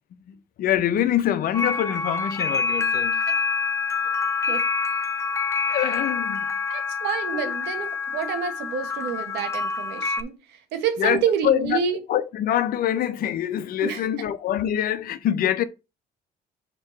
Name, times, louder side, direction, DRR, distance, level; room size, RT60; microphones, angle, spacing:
voice 1, 0.6-3.2 5.7-6.5 7.3-7.4 11.0-11.8 12.1-15.6, left 11 dB, 60° left, 0.6 m, -24 dB
sound 1, 1.5-10.2, left 4 dB, 15° left, 0.6 m, -26 dB
voice 2, 6.7-12.0 13.8-14.3, right 8 dB, 80° right, 1.4 m, -28 dB
6.1 x 2.9 x 5.7 m
cardioid pair, 110°, 17 cm